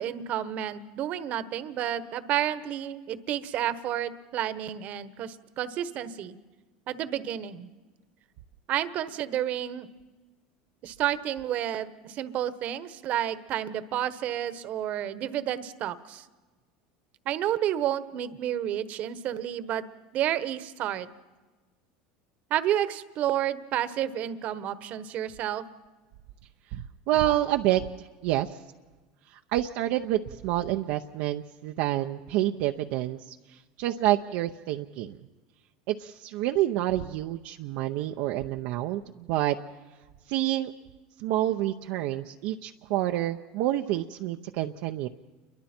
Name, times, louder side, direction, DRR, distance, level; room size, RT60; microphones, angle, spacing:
voice 1, 0.0-6.4 6.9-7.7 8.7-9.9 10.8-16.2 17.2-19.8 20.1-21.1 22.5-25.7, right 11 dB, 50° right, 13 dB, 1.2 m, -30 dB
voice 2, 26.7-28.5 29.3-35.2 35.9-39.6 40.3-40.7 41.2-45.1, right 14 dB, 65° right, 3 dB, 0.7 m, -28 dB
29.0 x 23.0 x 4.5 m, 1.3 s
supercardioid pair, 105°, 3 cm